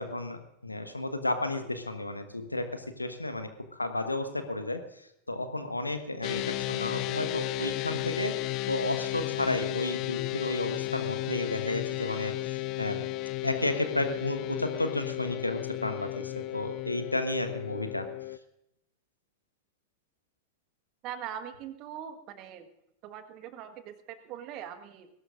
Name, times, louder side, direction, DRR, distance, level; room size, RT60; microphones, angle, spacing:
voice 1, 0.0-4.8 5.3-8.3 8.7-13.1 13.4-18.1, left 2 dB, 85° left, 8 dB, 1.3 m, -32 dB
sound 1, 6.2-18.4, left 19 dB, 40° left, 0.5 m, -34 dB
voice 2, 21.0-22.7 23.0-25.1, right 9 dB, 40° right, 9 dB, 1.6 m, -41 dB
21.5 x 17.5 x 2.6 m, 0.81 s
figure-of-eight pair, 90°, 0 cm